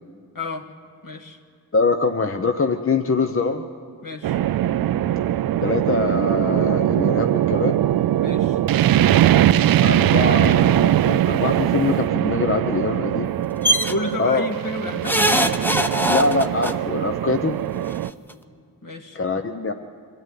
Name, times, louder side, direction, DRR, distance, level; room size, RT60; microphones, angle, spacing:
voice 1, 0.3-0.7 1.0-1.4 4.0-4.4 8.2-8.6 13.9-15.6 18.8-19.2, left 2 dB, 50° left, 4 dB, 2.1 m, -31 dB
voice 2, 1.7-3.7 5.6-7.8 9.8-13.3 14.2-14.5 16.1-17.6 19.1-19.7, left 4 dB, 30° left, 6 dB, 0.9 m, -23 dB
sound 1, 4.2-18.1, right 12 dB, 60° right, 0.5 m, -21 dB
sound 2, 13.6-13.9 15.0-16.7 17.9-18.0 18.3-18.4, equal, 5° left, 0.9 m, -20 dB
24.5 x 13.5 x 9.4 m, 2.3 s
cardioid pair, 90°, 41 cm